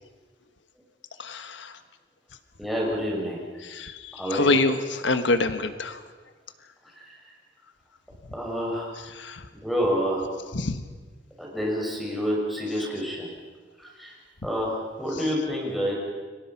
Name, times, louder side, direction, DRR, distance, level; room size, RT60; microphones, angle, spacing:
voice 1, 1.2-1.7 3.6-6.0 9.2-9.4 10.5-10.8, left 3 dB, 85° left, 9 dB, 1.4 m, -26 dB
voice 2, 2.6-3.4 4.2-4.6 6.9-7.1 8.3-8.9 9.6-10.3 11.4-13.3 13.8-14.2 14.4-15.9, equal, ahead, -3 dB, 6.4 m, -28 dB
30.0 x 24.0 x 5.9 m, 1.4 s
head